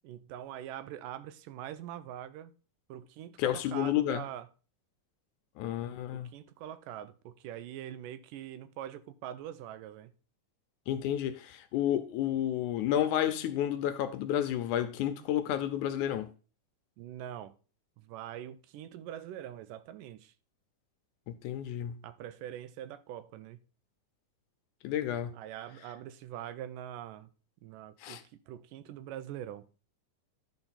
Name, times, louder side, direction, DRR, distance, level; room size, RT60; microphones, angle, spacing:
voice 1, 0.0-2.5 2.9-4.5 6.0-10.1 17.0-17.6 18.0-20.3 22.0-23.6 25.3-27.3 27.6-28.2 28.5-29.7, right 11 dB, 90° right, 2.2 m, -43 dB
voice 2, 3.4-4.2 5.6-6.3 10.9-16.3 21.3-22.0 24.8-25.3 28.0-28.2, left 11 dB, 75° left, 2.0 m, -31 dB
11.5 x 4.5 x 4.1 m
omnidirectional pair, 3.8 m